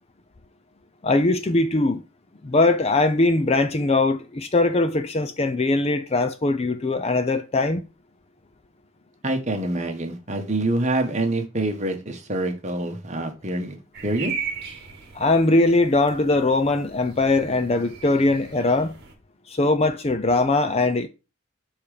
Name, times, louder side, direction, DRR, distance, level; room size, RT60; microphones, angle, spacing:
voice 1, 1.0-2.0 2.4-7.8 15.1-18.9 19.5-21.1, left 2 dB, 30° left, 0.5 m, -21 dB
voice 2, 9.2-13.7 14.0-14.3, right 2 dB, 30° right, 1.2 m, -26 dB
sound 1, 13.9-19.1, right 6 dB, 50° right, 1.3 m, -37 dB
7.1 x 3.7 x 5.0 m
head